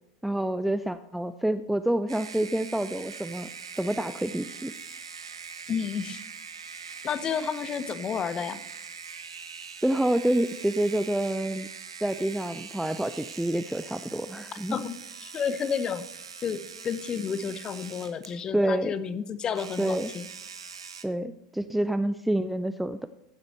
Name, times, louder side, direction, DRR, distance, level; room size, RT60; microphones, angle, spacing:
voice 1, 0.2-3.5 3.8-4.7 9.8-11.7 12.0-14.8 18.5-18.9 19.8-20.1 21.0-23.1, right 1 dB, 5° right, 11 dB, 0.3 m, -27 dB
sound 1, 2.1-18.4 19.5-21.0, right 6 dB, 75° right, 0.8 m, -42 dB
voice 2, 5.7-6.2 7.0-8.6 14.7-16.0 16.4-20.3, left 7 dB, 25° left, 14 dB, 0.7 m, -31 dB
14.5 x 7.9 x 3.2 m, 0.89 s
figure-of-eight pair, 85°, 3 cm